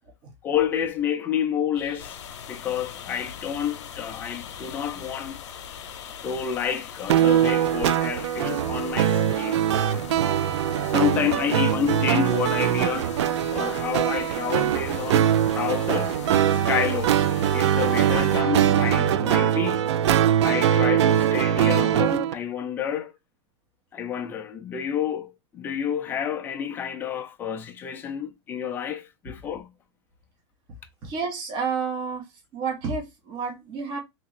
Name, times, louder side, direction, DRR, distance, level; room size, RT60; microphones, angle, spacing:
voice 1, 0.4-2.2 2.5-5.4 6.2-9.7 10.8-13.1 13.5-16.2 16.5-17.3 17.5-19.9 20.4-23.1 23.9-29.7, left 8 dB, 15° left, 0.4 m, -29 dB
sound 1, 1.7-7.7, left 9 dB, 50° left, 0.7 m, -46 dB
sound 2, 2.0-18.4, left 7 dB, 85° left, 0.8 m, -41 dB
sound 3, 7.1-22.3, right 10 dB, 75° right, 0.4 m, -22 dB
voice 2, 31.0-32.2 32.5-34.0, right 5 dB, 30° right, 1.1 m, -30 dB
2.9 x 2.6 x 4.1 m
supercardioid pair, 155°, 15 cm